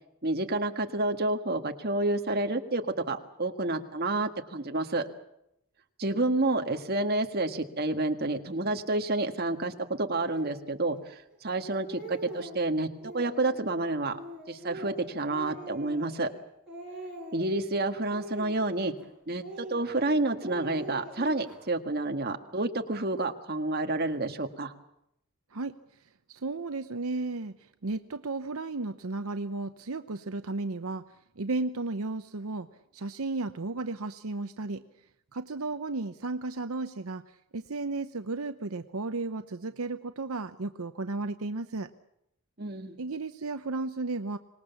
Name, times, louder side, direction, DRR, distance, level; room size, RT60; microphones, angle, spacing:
voice 1, 0.2-5.0 6.0-9.7 10.0-12.9 13.1-14.2 14.5-16.3 17.3-18.9 19.3-24.7 42.6-43.0, right 2 dB, 45° right, 5 dB, 1.8 m, -29 dB
Speech, 10.2-10.6 11.3-11.4 11.7-12.6 13.0-13.6 14.1-16.4 16.7-17.6 18.1-19.0 19.4-20.1 20.4-21.6, right 1 dB, ahead, 8.0 m, -43 dB
voice 2, 26.3-27.6 27.8-31.0 31.4-32.7 32.9-34.8 35.3-37.2 37.5-41.9 43.0-44.4, right 3 dB, 75° right, 9 dB, 0.8 m, -34 dB
25.0 x 20.0 x 7.1 m, 0.78 s
head